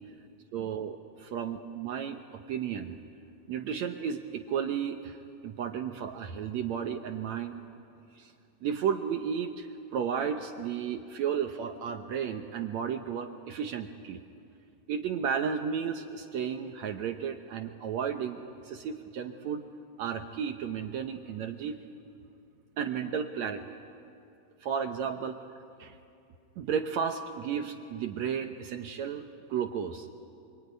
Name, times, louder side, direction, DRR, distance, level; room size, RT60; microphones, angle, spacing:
voice 1, 0.5-3.0 3.5-7.6 8.1-8.3 8.6-14.2 14.9-19.6 20.0-21.8 22.8-23.6 24.6-25.4 25.8-26.0 26.6-30.1, right 7 dB, 70° right, 5 dB, 1.7 m, -33 dB
27.0 x 23.5 x 9.4 m, 2.6 s
omnidirectional pair, 4.2 m